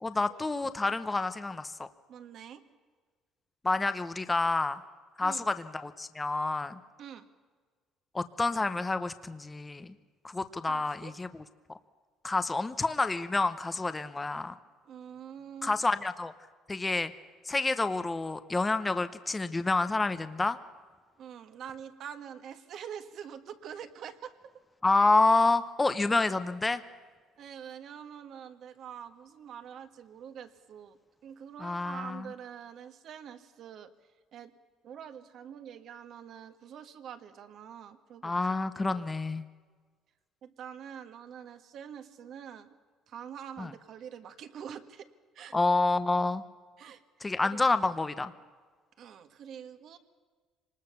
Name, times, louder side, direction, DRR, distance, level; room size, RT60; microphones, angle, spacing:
voice 1, 0.0-1.9 3.6-4.8 5.2-6.8 8.1-9.9 10.2-11.4 12.2-14.5 15.6-16.3 16.7-17.1 17.4-20.6 24.8-26.8 31.6-32.3 38.2-39.4 43.6-43.7 45.5-46.4 47.2-48.3, left 3 dB, 15° left, 11 dB, 0.9 m, -28 dB
voice 2, 2.1-2.6 5.2-5.5 7.0-7.3 10.6-11.1 14.8-15.7 21.2-24.4 27.4-31.0 31.2-33.9 34.3-34.5 34.8-38.4 38.8-39.0 40.4-42.8 43.1-45.1 45.3-45.5 46.8-47.0 47.5-47.6 49.0-50.0, right 8 dB, 60° right, 8 dB, 1.6 m, -45 dB
25.0 x 20.0 x 6.9 m, 1.5 s
cardioid pair, 115°, 0 cm